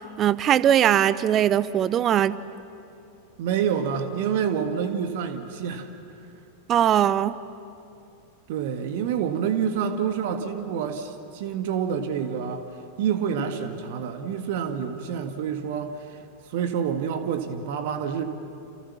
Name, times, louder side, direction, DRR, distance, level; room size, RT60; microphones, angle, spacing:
voice 1, 0.2-2.4 6.7-7.3, right 10 dB, 30° right, 17 dB, 0.8 m, -20 dB
voice 2, 3.4-5.9 8.5-12.7 13.0-15.9 16.5-18.2, right 7 dB, 50° right, 7 dB, 1.8 m, -27 dB
29.0 x 28.5 x 7.3 m, 2.6 s
figure-of-eight pair, 90°, 0 cm